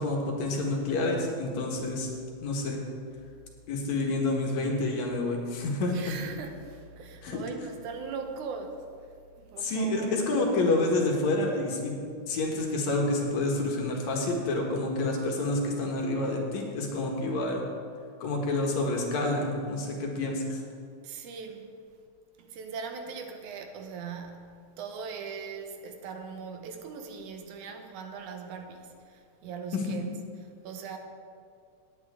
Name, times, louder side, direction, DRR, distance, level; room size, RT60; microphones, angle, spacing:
voice 1, 0.0-2.1 2.4-2.8 3.7-6.1 7.2-7.4 9.6-11.9 12.3-17.6 18.2-20.6 29.7-30.0, left 2 dB, 65° left, 2.7 m, -28 dB
voice 2, 5.9-8.9 9.4-10.3 21.0-21.7 22.4-30.2 30.6-31.0, right 5 dB, 80° right, 2.3 m, -40 dB
18.0 x 9.0 x 3.6 m
omnidirectional pair, 3.6 m